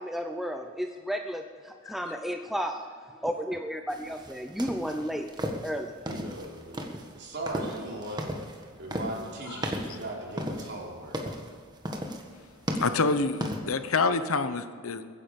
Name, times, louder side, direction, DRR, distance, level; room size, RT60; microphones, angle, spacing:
voice 1, 0.0-2.9 3.2-5.3 5.6-6.0, equal, ahead, 4 dB, 0.6 m, -33 dB
sound 1, 3.9-13.6, equal, 20° right, 1.5 m, -35 dB
voice 2, 6.1-6.8 7.1-11.2, right 1 dB, 55° right, -2 dB, 3.6 m, -38 dB
voice 3, 12.7-15.0, left 4 dB, 70° left, 10 dB, 0.9 m, -27 dB
22.5 x 9.9 x 5.3 m, 2.1 s
head